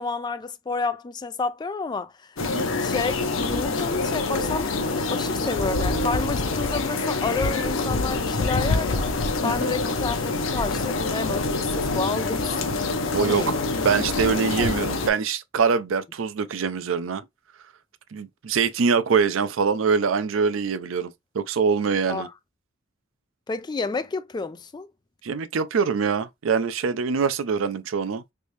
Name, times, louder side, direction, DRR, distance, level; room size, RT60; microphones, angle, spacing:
voice 1, 0.0-2.4 2.7-9.1 9.4-12.6 13.2-13.7 14.6-14.7 22.1-22.3 23.5-24.9, left 4 dB, 20° left, 0.3 m, -30 dB
sound 1, 2.4-15.1, left 3 dB, 90° left, 0.7 m, -26 dB
voice 2, 13.1-13.6 13.8-17.2 18.1-22.3 25.2-28.2, right 5 dB, 90° right, 0.5 m, -24 dB
3.4 x 2.6 x 3.1 m
head